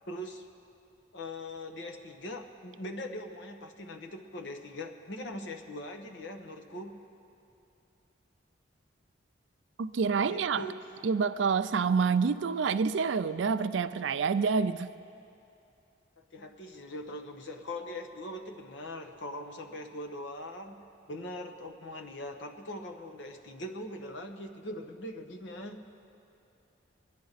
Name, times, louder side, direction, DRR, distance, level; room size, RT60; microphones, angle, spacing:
voice 1, 0.1-0.5 1.1-7.0 10.3-10.8 16.3-20.8 21.1-25.9, left 1 dB, 70° left, 4 dB, 1.0 m, -41 dB
voice 2, 9.8-10.6 11.0-14.9, right 5 dB, 75° right, 13 dB, 0.4 m, -27 dB
21.5 x 10.5 x 4.1 m, 2.7 s
head